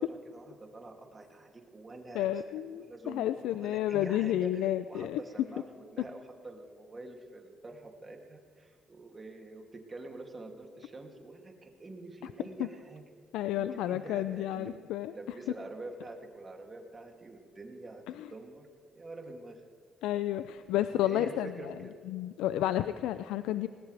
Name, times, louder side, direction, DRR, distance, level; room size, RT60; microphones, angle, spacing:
voice 1, 0.0-13.0 13.6-14.8 15.1-19.6 20.8-22.0, right 2 dB, 30° right, 2 dB, 2.8 m, -46 dB
voice 2, 2.1-5.2 12.6-12.7 13.3-15.1 18.2-18.3 20.0-21.7 22.1-23.7, left 12 dB, 85° left, 12 dB, 0.4 m, -31 dB
20.0 x 19.0 x 3.5 m, 2.2 s
supercardioid pair, 65°, 0 cm